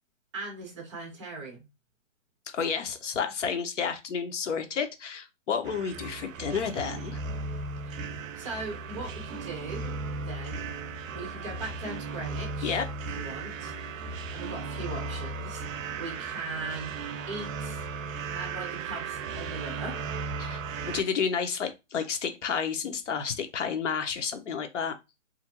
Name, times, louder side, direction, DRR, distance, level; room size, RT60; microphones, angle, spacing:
voice 1, 0.3-1.6 7.8-8.1 8.3-10.0 10.2-10.7 11.1-13.9 14.3-15.6 16.0-17.0 17.3-17.9 18.3-20.0, right 3 dB, 25° right, 0.8 m, -39 dB
voice 2, 2.5-7.2 12.6-12.9 20.4-25.0, left 6 dB, 65° left, 0.7 m, -31 dB
sound 1, 5.6-21.0, right 4 dB, 80° right, 0.5 m, -36 dB
2.5 x 2.1 x 2.8 m
hypercardioid pair, 155°, 39 cm